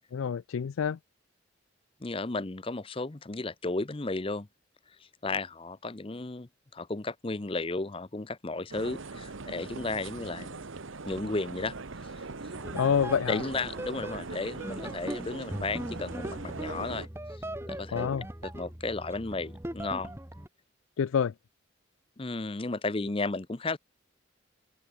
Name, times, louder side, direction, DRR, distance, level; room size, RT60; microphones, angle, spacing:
voice 1, 0.1-1.0 12.7-13.4 17.9-18.2 21.0-21.3, left 7 dB, 85° left, 0.4 m, -27 dB
voice 2, 2.0-4.5 5.0-10.7 11.1-11.7 12.2-12.3 13.3-17.1 17.7-18.1 18.4-20.1 22.2-23.8, left 3 dB, 25° left, 0.7 m, -34 dB
sound 1, 8.7-17.1, right 3 dB, 75° right, 1.1 m, -41 dB
sound 2, 12.5-20.5, right 1 dB, 10° right, 1.5 m, -40 dB
open air
head